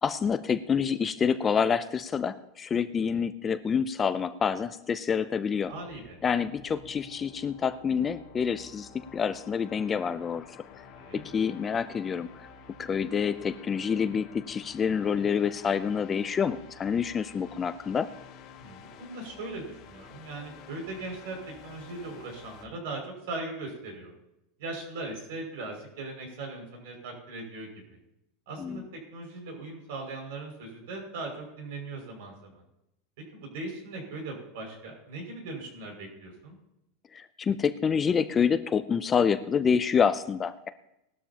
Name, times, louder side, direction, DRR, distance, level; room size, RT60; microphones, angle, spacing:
voice 1, 0.0-5.7 6.2-10.4 11.1-12.3 12.8-18.1 28.6-28.8 37.1-40.7, left 6 dB, 20° left, 11 dB, 0.5 m, -27 dB
sound 1, 5.6-22.7, left 6 dB, 40° left, 1.7 m, -50 dB
voice 2, 5.7-6.2 11.0-11.2 18.6-24.1 24.6-28.0 28.5-32.6 33.3-36.5, right 2 dB, 65° right, 1 dB, 5.9 m, -39 dB
19.0 x 12.5 x 2.9 m, 0.88 s
supercardioid pair, 155°, 0 cm